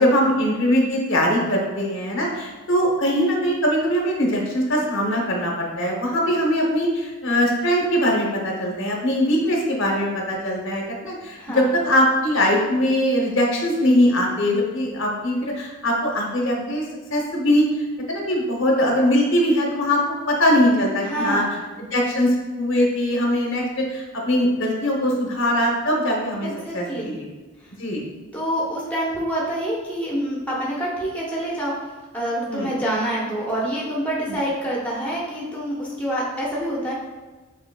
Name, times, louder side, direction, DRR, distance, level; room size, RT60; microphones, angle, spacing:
voice 1, 0.0-16.8 17.1-17.6 18.1-20.0 20.3-21.4 21.9-27.3 27.8-28.0 32.5-32.7 34.3-34.4, equal, 65° left, -1 dB, 0.9 m, -21 dB
voice 2, 11.4-11.7 21.0-21.6 26.4-27.2 28.3-31.7 32.1-36.9, right 1 dB, 5° left, -5 dB, 0.8 m, -26 dB
6.5 x 3.2 x 2.3 m, 1.3 s
head